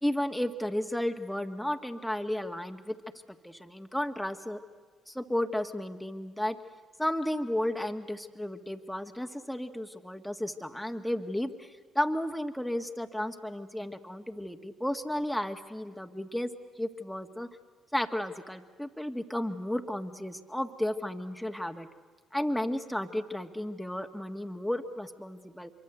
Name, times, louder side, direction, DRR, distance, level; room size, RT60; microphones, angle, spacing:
voice 1, 0.0-3.0 3.4-4.6 5.1-6.6 7.0-16.5 16.8-17.5 17.9-21.9 22.3-25.7, left 1 dB, 5° left, 5 dB, 1.7 m, -33 dB
25.5 x 23.5 x 8.1 m, 1.4 s
hypercardioid pair, 50°, 0 cm